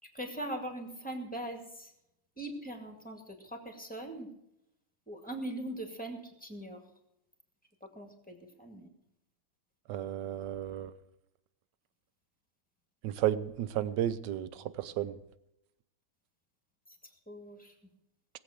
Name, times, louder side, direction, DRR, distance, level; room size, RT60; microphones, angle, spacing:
voice 1, 0.0-1.9 2.4-4.3 5.1-6.8 7.8-8.9 16.9-17.0 17.3-17.7, right 1 dB, 5° left, 4 dB, 1.9 m, -41 dB
voice 2, 9.9-10.9 13.0-15.2, right 11 dB, 65° right, 15 dB, 1.2 m, -33 dB
18.5 x 8.0 x 6.6 m, 0.81 s
omnidirectional pair, 2.3 m